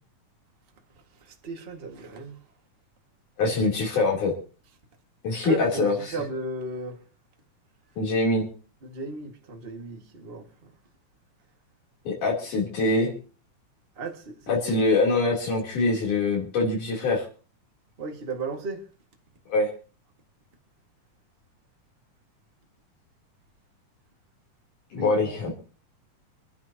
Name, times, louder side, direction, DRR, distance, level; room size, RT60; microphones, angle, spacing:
voice 1, 1.2-2.4 3.4-3.5 5.4-7.0 8.8-10.7 13.9-14.6 18.0-18.8 25.0-25.5, right 3 dB, 25° right, 1.6 m, -36 dB
voice 2, 3.4-4.3 5.2-6.1 8.0-8.5 12.0-13.1 14.5-17.2 19.5-19.7 24.9-25.5, left 2 dB, 75° left, 4.9 m, -24 dB
28.5 x 11.5 x 2.9 m
omnidirectional pair, 3.6 m